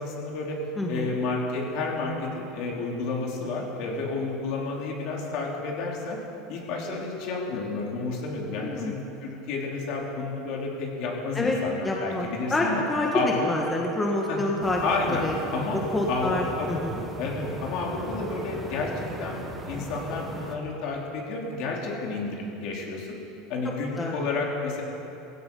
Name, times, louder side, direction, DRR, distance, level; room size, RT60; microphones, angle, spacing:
voice 1, 0.0-0.6 0.9-6.2 6.5-12.8 13.1-13.5 14.3-14.4 14.8-15.8 16.1-16.8 17.2-23.1 23.5-24.8, left 3 dB, 55° left, -1 dB, 3.4 m, -31 dB
voice 2, 0.8-1.1 8.6-8.9 11.3-11.6 11.8-14.8 15.2-15.3 15.7-17.0 24.0-24.1, left 2 dB, 10° left, -1 dB, 1.5 m, -27 dB
sound 1, 14.6-20.6, right 2 dB, 15° right, 1.6 m, -37 dB
16.5 x 16.0 x 5.4 m, 2.9 s
supercardioid pair, 145°, 0 cm